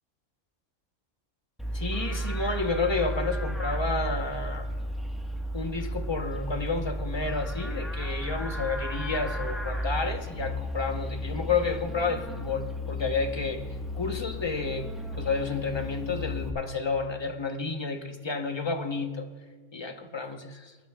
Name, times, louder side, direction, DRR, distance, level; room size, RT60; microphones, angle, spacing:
Livestock farm animals working animals, 1.6-16.5, equal, ahead, 1.0 m, -33 dB
voice 1, 1.7-4.7 5.5-13.6 13.9-14.9 15.2-19.3 19.7-20.7, left 4 dB, 25° left, 5 dB, 0.7 m, -30 dB
28.5 x 9.9 x 2.3 m, 1.5 s
omnidirectional pair, 1.5 m